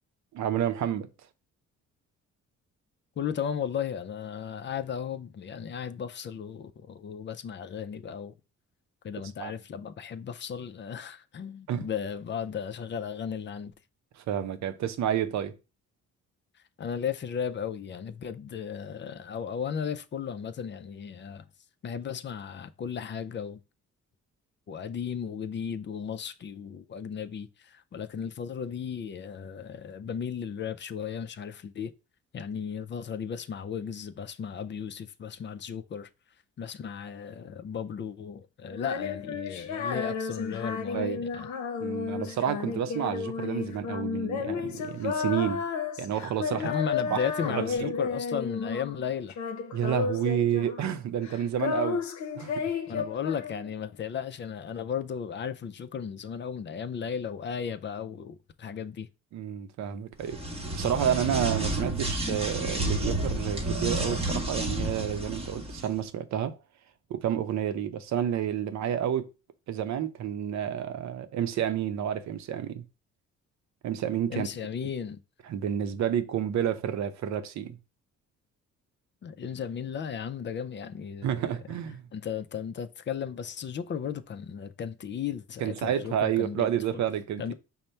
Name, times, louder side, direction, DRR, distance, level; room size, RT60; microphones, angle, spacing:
voice 1, 0.3-1.1 9.4-9.5 11.7-11.9 14.2-15.6 40.9-41.2 41.8-45.6 46.0-46.8 47.1-47.2 47.5-47.9 49.7-52.0 52.4-53.0 59.3-60.4 60.7-66.6 67.1-69.3 69.7-72.8 73.8-74.5 75.5-77.8 81.2-82.1 85.6-87.5, right 9 dB, 65° right, 0.6 m, -30 dB
voice 2, 3.2-8.3 9.0-13.7 16.8-21.5 21.8-23.6 24.7-31.9 32.3-36.1 36.6-41.5 46.6-49.4 52.9-59.1 74.3-75.2 79.2-81.6 82.1-86.7 86.9-87.0 87.4-87.5, left 7 dB, 40° left, 0.4 m, -35 dB
Female singing, 38.7-49.0 49.3-51.0 51.2-53.9, left 6 dB, 70° left, 0.7 m, -33 dB
sound 1, 60.2-65.9, right 1 dB, 20° right, 0.9 m, -31 dB
5.3 x 2.1 x 4.3 m
cardioid pair, 90°, 30 cm